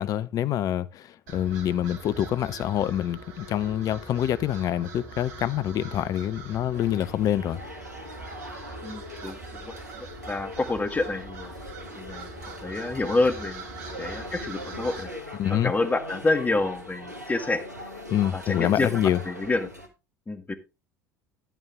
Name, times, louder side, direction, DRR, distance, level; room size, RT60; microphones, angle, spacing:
voice 1, 0.0-7.6 15.4-15.7 18.1-19.2, left 11 dB, 45° left, 0.7 m, -26 dB
sound 1, 1.3-15.1, right 3 dB, 60° right, 2.3 m, -42 dB
sound 2, 6.7-19.9, left 1 dB, 90° right, 1.6 m, -41 dB
voice 2, 8.8-11.5 11.9-12.3 12.6-13.6 14.0-15.1 15.6-17.6 18.3-19.7 20.3-20.5, left 2 dB, 15° left, 1.6 m, -28 dB
10.5 x 9.2 x 3.5 m
figure-of-eight pair, 65°, 9 cm